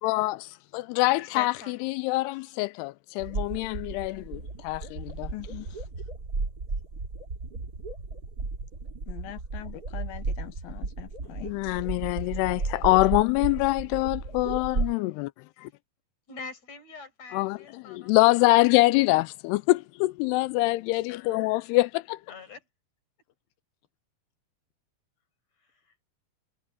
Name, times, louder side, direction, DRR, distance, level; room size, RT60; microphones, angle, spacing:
voice 1, 0.0-1.5 1.8-5.3 11.4-15.3 15.6-15.7 17.3-22.2, left 20 dB, 85° left, 2.6 m, -25 dB
voice 2, 1.2-1.8 15.5-15.7 16.3-19.0 22.3-22.6 25.6-25.9, left 5 dB, 40° left, 7.2 m, -44 dB
sound 1, 3.2-14.9, right 3 dB, 25° right, 2.5 m, -34 dB
voice 3, 5.3-5.7 9.1-11.5, left 15 dB, 70° left, 2.8 m, -42 dB
omnidirectional pair, 4.6 m